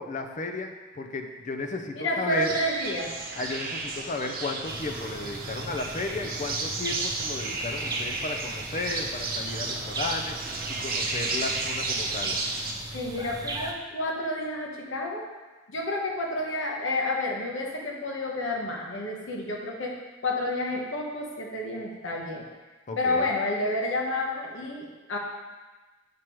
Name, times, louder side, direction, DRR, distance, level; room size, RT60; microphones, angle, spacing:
voice 1, 0.0-2.5 3.4-12.4 22.9-23.3, left 3 dB, 40° left, 5 dB, 0.5 m, -34 dB
voice 2, 1.9-3.1 12.9-15.3 15.7-19.9 20.2-22.4 23.0-25.2, left 1 dB, 75° left, -1 dB, 1.1 m, -30 dB
sound 1, 2.3-12.7, right 3 dB, 50° right, 0.7 m, -33 dB
sound 2, 4.7-13.7, right 2 dB, 20° right, 0.4 m, -38 dB
7.4 x 4.9 x 3.0 m, 1.2 s
head